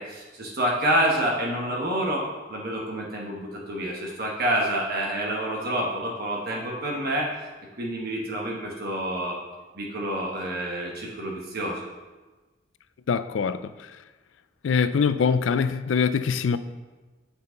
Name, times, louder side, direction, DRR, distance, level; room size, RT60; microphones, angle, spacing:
voice 1, 0.0-7.3 7.8-9.4 9.7-11.8, right 1 dB, 55° right, 1.2 m, -28 dB
voice 2, 13.1-13.7 14.6-16.6, left 6 dB, 80° left, 0.4 m, -23 dB
8.0 x 5.6 x 3.8 m
head